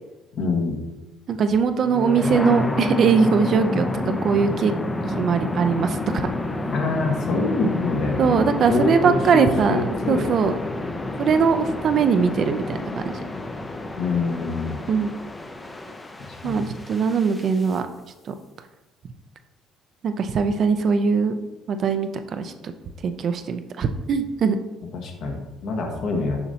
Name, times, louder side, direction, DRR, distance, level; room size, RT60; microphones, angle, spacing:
voice 1, 0.3-0.8 6.7-10.3 14.0-14.8 16.4-16.7 24.9-26.4, left 3 dB, 65° left, 2 dB, 1.3 m, -25 dB
voice 2, 1.3-4.7 5.0-6.3 8.2-9.8 10.1-10.5 11.2-13.2 14.9-15.1 16.4-17.9 20.0-21.4 21.7-22.7 23.0-24.6, right 6 dB, 50° right, 8 dB, 0.5 m, -21 dB
sound 1, 1.8-17.7, left 2 dB, 20° left, 0.5 m, -29 dB
7.0 x 5.0 x 2.8 m, 1.1 s
supercardioid pair, 85°, 0 cm